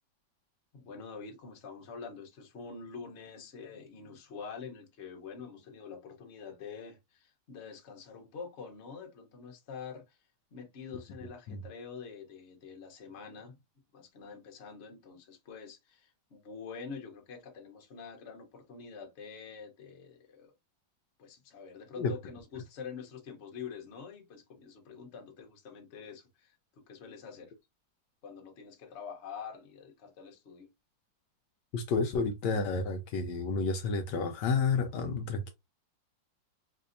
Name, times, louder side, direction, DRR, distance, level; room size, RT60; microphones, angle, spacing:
voice 1, 0.7-10.2 10.5-13.6 13.9-20.5 21.2-26.6 26.9-27.5 28.2-30.7, left 6 dB, 45° left, 1.0 m, -46 dB
voice 2, 31.7-35.5, left 4 dB, 75° left, 1.1 m, -30 dB
4.2 x 2.7 x 2.5 m
omnidirectional pair, 2.0 m